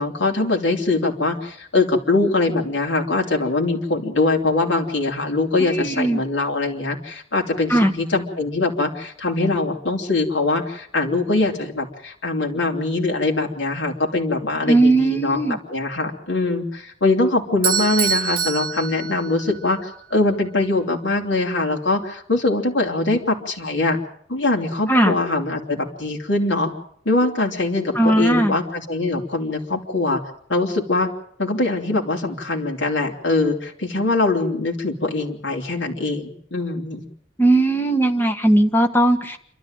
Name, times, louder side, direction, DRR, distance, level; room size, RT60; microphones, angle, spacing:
voice 1, 0.0-24.0 24.3-26.7 27.0-30.2 30.5-31.1 31.4-37.0, left 2 dB, 80° left, 0 dB, 3.4 m, -22 dB
voice 2, 5.6-6.2 7.7-7.9 14.7-15.6 24.9-25.1 27.9-28.5 37.4-39.4, right 1 dB, 10° left, 4 dB, 1.6 m, -18 dB
Bell / Doorbell, 17.6-19.7, right 8 dB, 50° right, 1.3 m, -24 dB
27.5 x 12.5 x 9.1 m, 0.69 s
head